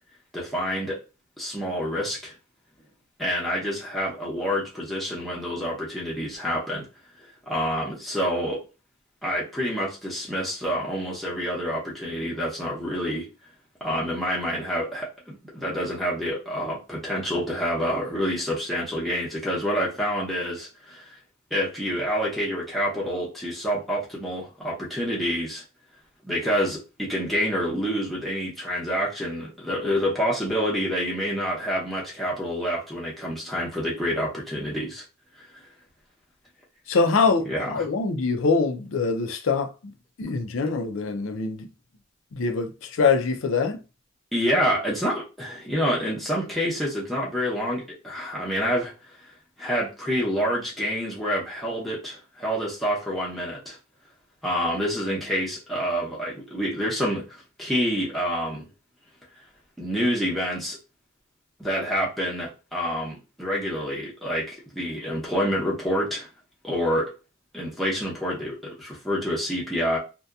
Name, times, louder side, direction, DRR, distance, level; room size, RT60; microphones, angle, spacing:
voice 1, 0.3-1.0 1.4-2.3 3.2-6.9 7.5-8.6 9.2-13.3 13.8-21.1 21.5-25.6 26.2-35.0 37.5-37.9 44.3-48.9 49.6-53.8 54.4-58.7 59.8-60.8 61.6-66.3 66.6-67.1 67.5-70.0, equal, ahead, 0.7 m, -27 dB
voice 2, 36.9-39.7 40.2-41.7 42.3-43.8, left 4 dB, 70° left, 0.5 m, -24 dB
2.7 x 2.2 x 2.3 m
head